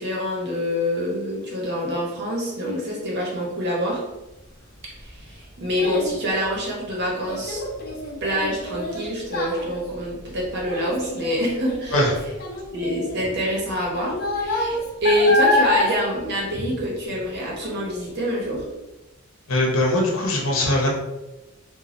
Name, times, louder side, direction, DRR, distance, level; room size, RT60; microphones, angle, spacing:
voice 1, 0.0-4.0 5.0-7.6 8.2-12.0 12.7-18.6, equal, 55° right, -3 dB, 0.9 m, -26 dB
Child speech kid speaking, 4.6-17.3 17.6-18.0 18.5-18.6, left 2 dB, 50° left, 0.6 m, -27 dB
voice 2, 19.5-20.9, left 1 dB, 80° left, -2 dB, 0.8 m, -21 dB
3.1 x 2.3 x 2.6 m, 1.0 s
head